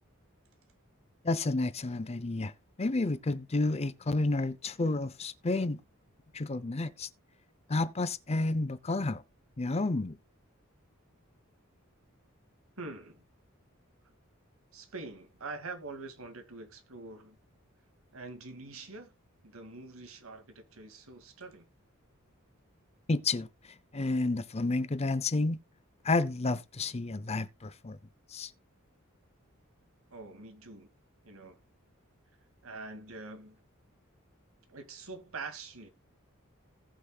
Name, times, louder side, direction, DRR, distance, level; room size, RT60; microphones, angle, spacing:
voice 1, 1.2-2.5 2.8-5.8 6.3-7.1 7.7-9.2 9.6-10.2 23.1-23.5 23.9-25.6 26.0-28.0 28.3-28.5, left 2 dB, 30° left, 0.6 m, -30 dB
voice 2, 12.8-13.3 14.7-17.4 18.1-19.1 19.4-21.7 30.1-30.9 31.2-31.6 32.6-33.6 34.7-35.9, right 3 dB, 85° right, 2.1 m, -45 dB
18.5 x 6.2 x 2.3 m
head